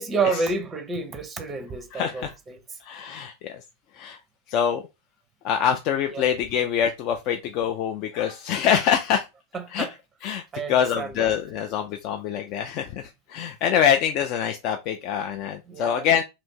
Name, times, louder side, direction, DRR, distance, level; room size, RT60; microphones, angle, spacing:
voice 1, 0.0-2.6 6.1-6.3 9.5-9.9 10.5-11.4 15.7-16.1, right 4 dB, 20° right, 0.6 m, -29 dB
voice 2, 1.9-2.3 2.8-3.6 4.0-4.2 4.5-4.8 5.4-9.3 9.7-9.9 10.2-10.4 10.7-16.2, left 8 dB, 40° left, 0.4 m, -25 dB
2.9 x 2.5 x 3.5 m
figure-of-eight pair, 90°, 0 cm